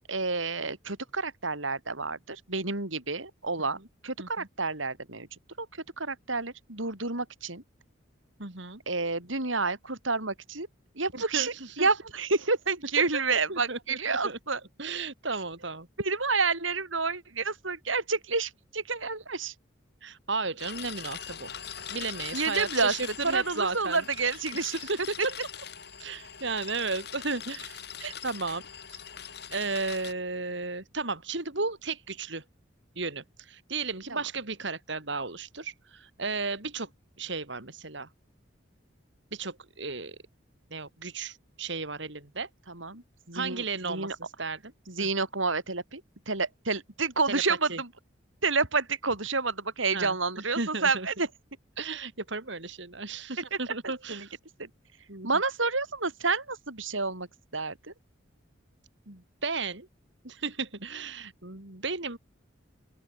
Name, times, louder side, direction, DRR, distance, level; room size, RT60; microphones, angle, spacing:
voice 1, 0.1-3.8 4.0-5.3 5.6-5.7 6.0-7.6 8.9-10.7 11.0-14.6 16.0-19.5 22.3-22.9 23.2-24.8 25.2-25.3 28.0-28.1 34.1-34.2 42.7-44.2 44.9-46.0 46.3-47.9 48.4-51.3 53.5-53.6 54.1-54.3 54.6-54.7 55.2-57.3 57.5-57.8, right 4 dB, 85° right, 6.2 m, -29 dB
voice 2, 8.4-8.8 11.1-11.9 13.5-14.4 14.8-15.9 20.0-21.5 21.9-25.3 26.0-27.8 28.2-28.6 28.9-29.0 29.5-32.4 33.0-36.9 37.2-38.1 39.3-40.2 40.7-42.5 43.3-44.6 45.0-45.1 47.3-47.4 47.7-47.8 49.9-51.1 51.8-54.4 55.1-55.3 59.1-59.9 60.2-62.2, right 4 dB, 65° right, 3.4 m, -34 dB
sound 1, 20.6-30.1, left 8 dB, 55° left, 5.1 m, -42 dB
open air
head